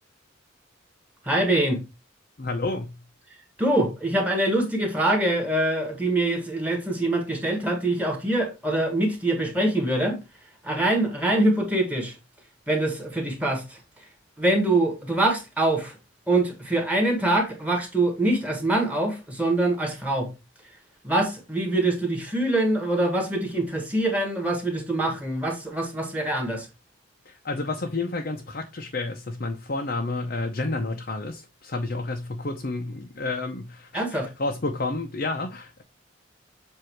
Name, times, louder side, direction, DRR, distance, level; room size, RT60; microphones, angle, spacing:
voice 1, 1.2-1.8 3.6-10.2 10.6-12.1 12.7-13.8 14.4-16.0 16.3-20.3 21.0-26.7 33.9-34.3, right 1 dB, 5° right, 1.5 m, -24 dB
voice 2, 2.4-2.9 27.3-35.8, left 2 dB, 45° left, 0.7 m, -30 dB
7.7 x 2.7 x 4.6 m
head